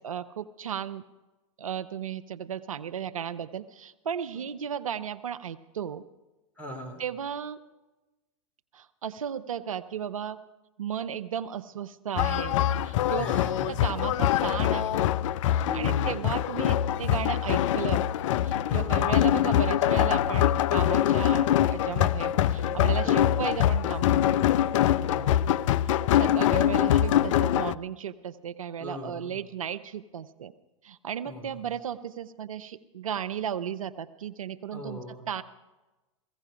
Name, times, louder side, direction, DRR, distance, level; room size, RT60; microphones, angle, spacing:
voice 1, 0.0-1.0 1.6-6.0 7.0-7.6 8.7-10.4 10.8-12.6 12.8-13.3 13.7-15.1 15.5-18.0 18.4-24.4 25.8-30.5 30.8-35.4, right 8 dB, 90° right, 12 dB, 0.6 m, -35 dB
voice 2, 6.6-7.0 13.2-13.9 15.7-16.3 18.7-19.1 23.0-23.4 25.0-25.5 28.8-29.3 31.2-31.6 34.7-35.2, left 1 dB, 10° left, 4 dB, 2.6 m, -39 dB
sound 1, 12.2-27.7, left 11 dB, 65° left, 0.4 m, -24 dB
16.0 x 16.0 x 5.0 m, 1.1 s
hypercardioid pair, 110°, 17 cm